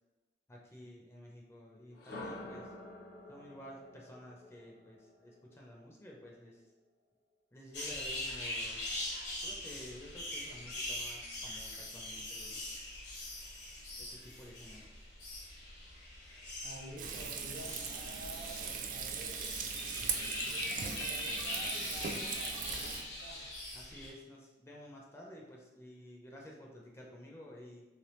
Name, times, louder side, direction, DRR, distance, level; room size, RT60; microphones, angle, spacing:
voice 1, 0.5-2.7 3.3-6.6 7.5-8.8 9.4-12.6 14.0-14.9 23.7-27.9, equal, 15° left, -2 dB, 0.4 m, -52 dB
sound 1, 1.9-5.9, left 1 dB, 55° left, 0.7 m, -49 dB
sound 2, 7.7-24.1, left 1 dB, 75° left, 1.1 m, -42 dB
voice 2, 16.6-19.5 20.1-23.5, equal, 65° right, -3 dB, 1.0 m, -50 dB
Frying (food), 17.0-23.0, right 6 dB, 45° right, 0.3 m, -39 dB
3.2 x 3.2 x 3.0 m, 1.2 s
head